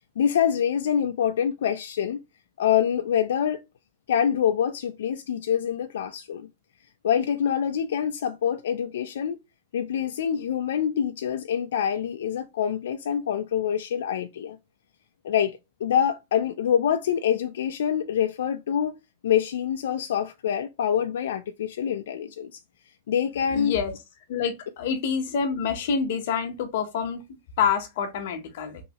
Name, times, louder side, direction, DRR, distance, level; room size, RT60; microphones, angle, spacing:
voice 1, 0.2-2.2 2.6-3.6 4.1-6.5 7.0-9.4 9.7-14.6 15.2-19.0 19.2-22.6 23.1-23.7, left 9 dB, 85° left, 0.3 m, -25 dB
voice 2, 23.5-23.9 24.3-28.8, left 6 dB, 55° left, 0.8 m, -27 dB
3.1 x 2.8 x 2.9 m
supercardioid pair, 170°, 0 cm